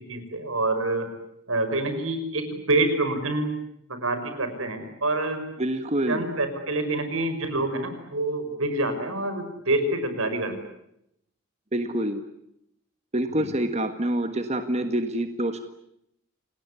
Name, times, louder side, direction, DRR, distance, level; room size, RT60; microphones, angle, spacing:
voice 1, 0.1-1.1 1.5-3.5 3.9-5.4 6.1-10.5 13.4-13.5, right 2 dB, 90° right, 8 dB, 5.8 m, -26 dB
voice 2, 5.6-6.3 11.7-12.2 13.1-15.6, right 1 dB, 30° right, 8 dB, 1.6 m, -26 dB
29.0 x 20.0 x 9.9 m, 0.79 s
head